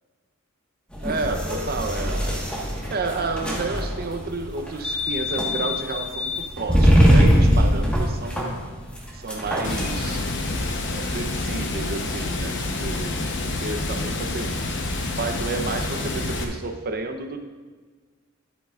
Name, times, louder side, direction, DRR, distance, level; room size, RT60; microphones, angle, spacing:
sound 1, 0.9-10.2, equal, 5° left, 1.4 m, -22 dB
voice 1, 1.0-2.4 2.9-8.6 9.1-10.2 10.9-13.2 13.6-14.6 15.2-17.4, right 3 dB, 45° right, 6 dB, 0.8 m, -31 dB
Water, 9.6-16.4, left 2 dB, 60° left, 0.9 m, -28 dB
11.5 x 8.5 x 2.5 m, 1.4 s
head